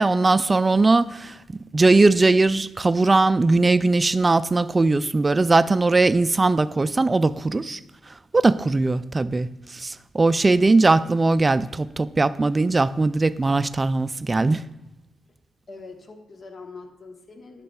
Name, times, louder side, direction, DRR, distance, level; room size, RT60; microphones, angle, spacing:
voice 1, 0.0-1.3 1.7-7.8 8.3-14.6, right 3 dB, 30° right, 14 dB, 0.3 m, -19 dB
voice 2, 15.7-17.6, left 3 dB, 50° left, 5 dB, 1.0 m, -42 dB
11.5 x 6.7 x 2.3 m, 0.94 s
supercardioid pair, 60°, 0 cm